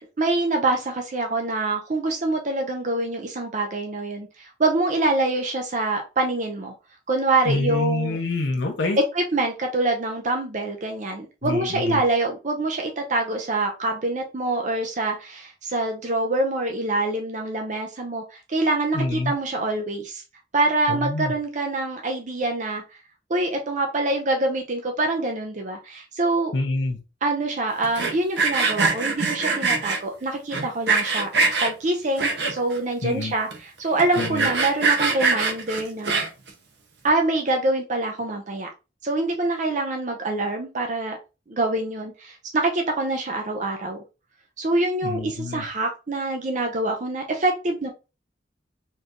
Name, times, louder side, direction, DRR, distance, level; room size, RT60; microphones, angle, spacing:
voice 1, 0.2-6.7 7.1-8.2 9.1-20.2 20.5-22.8 23.3-26.6 27.2-31.3 31.6-36.2 37.0-38.7 39.0-41.2 41.5-44.0 44.6-47.9, right 2 dB, 45° right, 0.6 m, -25 dB
voice 2, 7.4-9.0 11.4-12.0 18.9-19.3 20.9-21.3 26.5-27.0 33.0-33.3 34.2-34.5 45.0-45.6, left 2 dB, 90° left, 0.8 m, -26 dB
Sawing, 27.8-30.0 30.5-31.7 32.2-32.8 33.2-33.3 33.5-33.6 34.0-36.5, right 4 dB, 70° right, 0.9 m, -23 dB
4.3 x 3.3 x 2.5 m
head